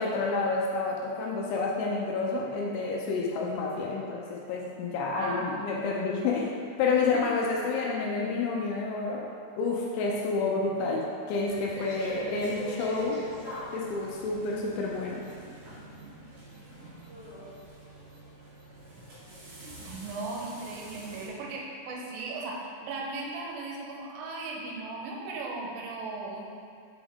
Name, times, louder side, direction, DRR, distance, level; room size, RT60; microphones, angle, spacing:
voice 1, 0.0-9.3 9.6-13.2 13.7-15.3, left 3 dB, 80° left, -2 dB, 2.8 m, -29 dB
voice 2, 5.2-5.7 6.9-7.2 19.8-26.4, right 3 dB, 85° right, -2 dB, 3.4 m, -37 dB
sound 1, 11.4-21.3, equal, 60° right, 3.1 m, -44 dB
7.1 x 4.8 x 3.4 m, 2.3 s
omnidirectional pair, 5.7 m